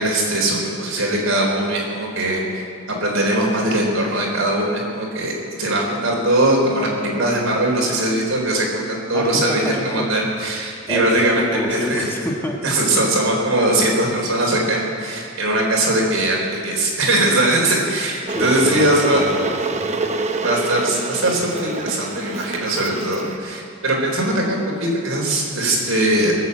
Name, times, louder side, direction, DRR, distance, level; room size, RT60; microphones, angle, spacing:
voice 1, 0.0-12.3 12.6-19.2 20.4-26.3, right 1 dB, 75° right, -1 dB, 3.9 m, -20 dB
voice 2, 9.1-10.4 10.9-12.8 18.3-19.9, equal, 10° left, 0 dB, 1.4 m, -28 dB
Water / Boiling, 18.3-23.4, right 2 dB, 35° right, 0.8 m, -26 dB
21.0 x 7.4 x 8.0 m, 2.3 s
head